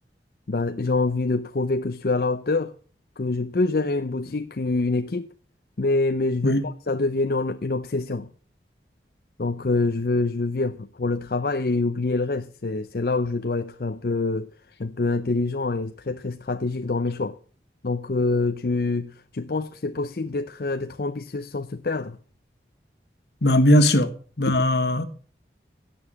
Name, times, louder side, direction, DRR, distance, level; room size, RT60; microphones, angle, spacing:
voice 1, 0.5-2.7 3.2-5.3 5.8-8.3 9.4-14.5 14.8-17.4 17.8-22.2 24.5-24.6, left 3 dB, 55° left, 0.6 m, -26 dB
voice 2, 23.4-24.1 24.4-25.0, left 1 dB, 75° left, 1.6 m, -18 dB
16.5 x 7.0 x 7.2 m
head